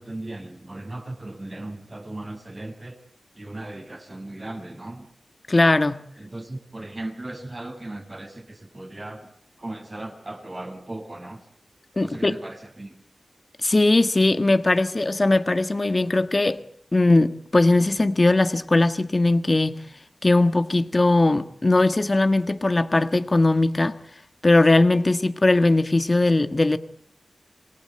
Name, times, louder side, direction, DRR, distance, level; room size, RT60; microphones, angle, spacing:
voice 1, 0.0-3.0 3.3-5.1 6.2-9.3 9.6-11.4 12.0-13.0, right 2 dB, 40° right, 6.4 m, -37 dB
voice 2, 5.5-6.0 12.0-12.3 13.6-16.6 16.9-19.8 20.2-24.0 24.4-26.8, left 2 dB, 35° left, 1.5 m, -19 dB
27.0 x 21.0 x 9.0 m
wide cardioid pair, 80°, 0 cm